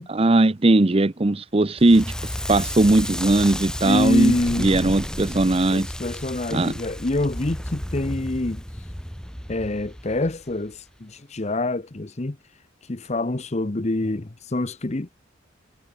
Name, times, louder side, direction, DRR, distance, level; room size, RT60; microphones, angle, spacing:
voice 1, 0.1-2.1 2.5-5.9 6.5-6.7, right 2 dB, 30° right, 0.6 m, -19 dB
Crackle, 1.8-10.7, equal, 5° left, 3.0 m, -32 dB
voice 2, 3.8-4.7 5.7-8.6 9.5-12.4 12.9-15.1, left 2 dB, 35° left, 0.8 m, -26 dB
head